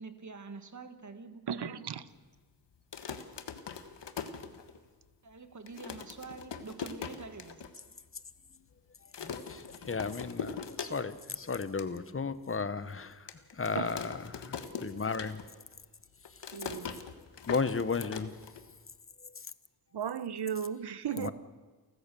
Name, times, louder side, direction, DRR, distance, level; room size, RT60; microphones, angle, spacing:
voice 1, 0.0-1.9 5.2-7.6, right 4 dB, 45° right, 9 dB, 1.7 m, -46 dB
voice 2, 1.5-2.0 13.8-13.9 16.5-17.0 19.9-21.3, right 8 dB, 70° right, 16 dB, 1.0 m, -35 dB
sound 1, 2.8-5.0 5.4-5.5 5.7-7.7 8.1-8.2 8.4-8.7 9.1-11.3 11.6-11.9 12.4-12.5 13.3-15.7 16.0-18.9, left 6 dB, 80° left, 1.5 m, -42 dB
voice 3, 9.2-15.4 16.4-16.5 17.5-18.3 19.2-19.5 21.2-21.3, left 4 dB, 30° left, 14 dB, 1.0 m, -35 dB
29.0 x 14.5 x 6.9 m, 1.4 s
wide cardioid pair, 115°, 42 cm